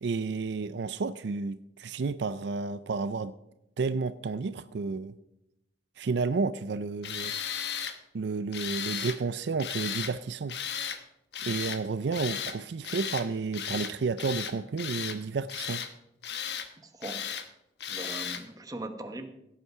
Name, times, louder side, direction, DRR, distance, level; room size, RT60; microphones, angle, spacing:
voice 1, 0.0-3.3 3.8-5.1 6.0-7.3 8.1-10.6 11.4-15.8, right 4 dB, 65° right, 14 dB, 0.4 m, -31 dB
Tools, 7.0-8.0 8.5-9.2 9.6-10.1 10.5-11.0 11.3-11.8 12.1-12.6 12.8-13.3 13.5-13.9 14.2-15.2 15.5-15.9 16.2-16.7 17.0-17.5 17.8-18.4, left 8 dB, 60° left, 1.1 m, -35 dB
voice 2, 16.8-17.2 17.9-19.3, right 2 dB, 20° right, 7 dB, 1.1 m, -40 dB
16.5 x 8.3 x 4.7 m, 0.87 s
head